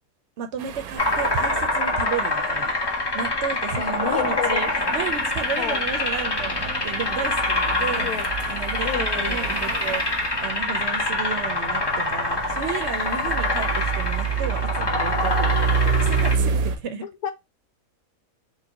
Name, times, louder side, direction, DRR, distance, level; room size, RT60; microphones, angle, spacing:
voice 1, 0.4-8.1 8.5-10.0 10.4-17.0, right 7 dB, 65° right, 0.8 m, -33 dB
sound 1, 0.6-16.8, right 6 dB, 80° right, 1.1 m, -29 dB
sound 2, 1.0-16.3, left 2 dB, 25° left, 0.5 m, -25 dB
voice 2, 3.8-4.8 5.5-5.8 8.0-8.3 8.8-9.5 17.2-17.3, left 9 dB, 85° left, 1.2 m, -31 dB
4.6 x 2.2 x 2.8 m
omnidirectional pair, 1.5 m